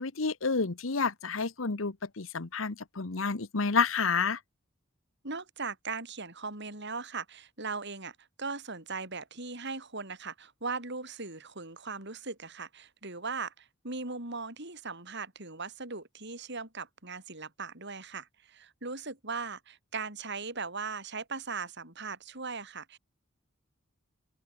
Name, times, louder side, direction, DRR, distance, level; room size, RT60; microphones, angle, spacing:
voice 1, 0.0-4.4, left 4 dB, 70° left, 1.1 m, -30 dB
voice 2, 5.2-23.0, right 4 dB, 60° right, 7.0 m, -39 dB
open air
head